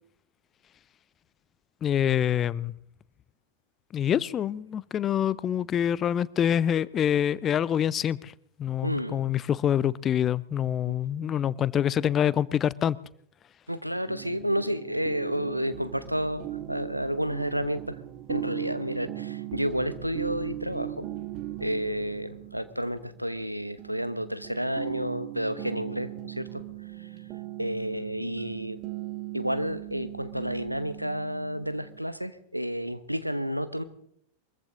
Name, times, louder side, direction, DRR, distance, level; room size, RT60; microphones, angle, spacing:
voice 1, 1.8-2.7 3.9-8.3 8.6-13.0, left 9 dB, 25° left, 21 dB, 0.5 m, -26 dB
voice 2, 8.8-9.2 10.9-11.0 13.7-18.0 18.3-21.1 21.6-26.6 27.0-27.1 27.6-28.8 29.3-33.8, equal, 90° right, 13 dB, 1.0 m, -31 dB
sound 1, 14.1-32.0, right 14 dB, 40° right, 1.4 m, -39 dB
23.0 x 14.5 x 3.7 m, 0.70 s
figure-of-eight pair, 90°, 0 cm